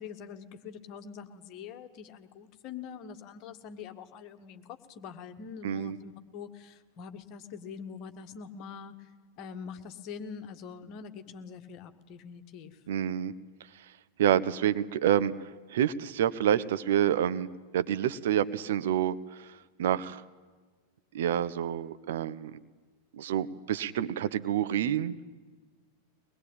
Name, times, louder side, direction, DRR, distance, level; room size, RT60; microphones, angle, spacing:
voice 1, 0.0-9.1 9.4-12.8, left 6 dB, 40° left, 7 dB, 1.8 m, -44 dB
voice 2, 5.6-5.9 12.9-13.3 14.2-15.3 15.7-17.5 17.7-19.5 19.8-20.2 21.1-22.5 23.2-25.2, right 10 dB, 55° right, 13 dB, 0.9 m, -28 dB
23.0 x 20.5 x 9.0 m, 1.4 s
figure-of-eight pair, 90°, 0 cm